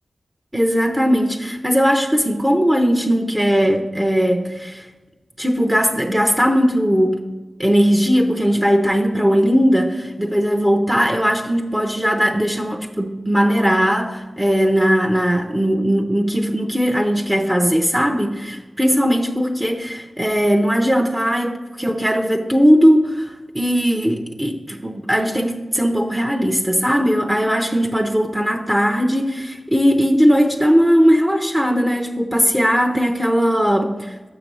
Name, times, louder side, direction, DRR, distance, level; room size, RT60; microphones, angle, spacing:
voice 1, 0.5-4.9 5.4-7.2 7.6-34.3, equal, 15° right, 3 dB, 0.7 m, -18 dB
6.8 x 5.9 x 5.4 m, 1.2 s
cardioid pair, 45°, 0 cm